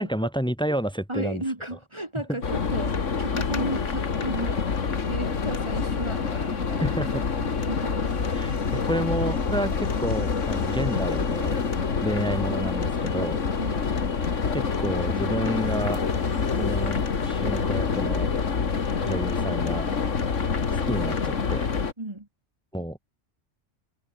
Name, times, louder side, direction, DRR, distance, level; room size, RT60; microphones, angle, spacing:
voice 1, 0.0-1.4 6.8-7.2 8.3-11.6 12.0-13.4 14.5-16.0 16.6-18.3 19.0-19.9 20.9-21.7 22.7-23.0, equal, 5° left, 2.4 m, -30 dB
voice 2, 1.1-4.7 5.1-6.9 7.4-8.1 13.6-13.8 22.0-22.3, right 1 dB, 25° right, 2.3 m, -34 dB
sound 1, 2.4-21.9, left 5 dB, 80° left, 2.2 m, -27 dB
sound 2, 8.0-11.9 15.1-17.5, left 3 dB, 55° left, 2.9 m, -36 dB
omnidirectional pair, 1.2 m